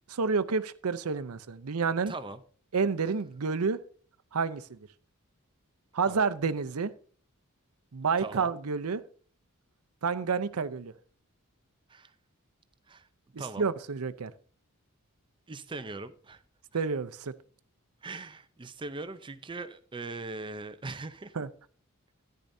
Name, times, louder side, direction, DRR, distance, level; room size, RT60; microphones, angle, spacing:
voice 1, 0.1-2.1 2.7-3.8 4.3-4.8 5.9-6.9 7.9-9.0 10.0-10.9 13.6-14.3 16.7-17.3 21.4-21.5, right 5 dB, 75° right, 0.6 m, -29 dB
voice 2, 2.1-2.4 6.1-6.2 8.2-8.5 11.9-12.1 12.9-13.1 13.4-13.6 15.5-16.4 16.7-16.8 18.0-21.4, right 3 dB, 20° right, 0.5 m, -40 dB
13.5 x 10.5 x 2.7 m
head